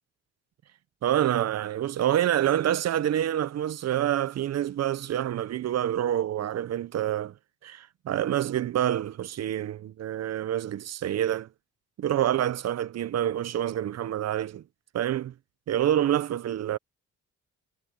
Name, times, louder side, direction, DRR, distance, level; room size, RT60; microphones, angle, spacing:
voice 1, 1.0-7.3 7.6-11.5 12.0-14.6 14.9-15.3 15.7-16.8, right 11 dB, 60° right, 0.8 m, -27 dB
cardioid pair, 90°, 30 cm